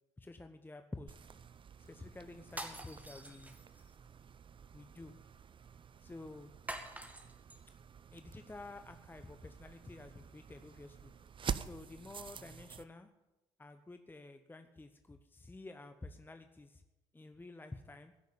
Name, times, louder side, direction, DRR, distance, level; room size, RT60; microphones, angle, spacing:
voice 1, 0.2-1.1 1.8-3.5 4.7-5.1 6.0-6.5 8.1-11.1 11.6-13.1 13.6-16.8 17.1-18.1, left 2 dB, 15° left, 7 dB, 1.0 m, -50 dB
sound 1, 1.1-12.8, right 7 dB, 40° right, 0.7 m, -48 dB
sound 2, 2.5-4.0 6.7-7.6, right 1 dB, 10° right, 2.2 m, -46 dB
17.0 x 6.6 x 8.6 m, 0.99 s
hypercardioid pair, 65°, 14 cm